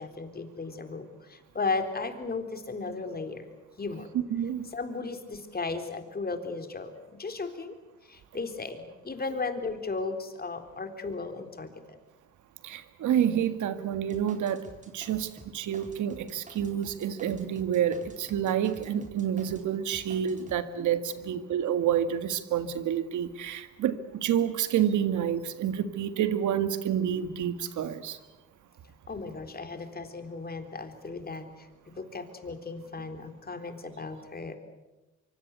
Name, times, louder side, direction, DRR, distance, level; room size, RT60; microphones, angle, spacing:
voice 1, 0.0-3.5 3.8-4.1 4.7-7.7 8.0-12.0 21.1-21.4 29.1-31.7 31.9-34.6, left 3 dB, 30° left, 7 dB, 3.8 m, -35 dB
voice 2, 4.3-4.7 12.6-14.7 14.9-28.2, right 9 dB, 75° right, 10 dB, 2.0 m, -28 dB
sound 1, 14.1-19.7 19.9-20.6, right 2 dB, 25° right, 4.5 m, -50 dB
25.0 x 24.5 x 8.2 m, 1.1 s
cardioid pair, 90°, 30 cm